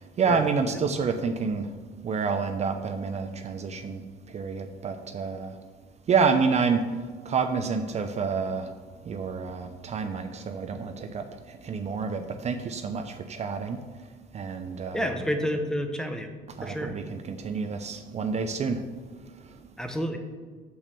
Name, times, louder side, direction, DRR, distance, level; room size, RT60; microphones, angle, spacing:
voice 1, 0.0-5.6 6.1-8.7 9.0-13.8 14.3-15.1 16.5-19.7, right 5 dB, 40° right, 7 dB, 0.7 m, -29 dB
voice 2, 14.9-16.3 16.6-17.0 19.8-20.2, equal, 5° left, 4 dB, 0.9 m, -29 dB
6.3 x 6.0 x 6.8 m, 1.5 s
cardioid pair, 110°, 17 cm